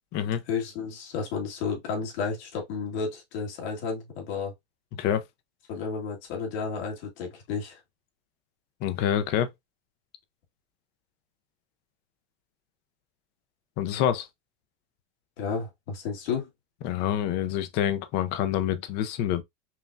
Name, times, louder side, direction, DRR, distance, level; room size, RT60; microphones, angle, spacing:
voice 1, 0.5-4.5 5.7-7.8 15.4-16.5, left 5 dB, 65° left, 1.8 m, -32 dB
voice 2, 4.9-5.2 8.8-9.5 13.8-14.3 16.8-19.4, left 10 dB, 30° left, 0.4 m, -27 dB
5.5 x 2.2 x 2.5 m
supercardioid pair, 155°, 35 cm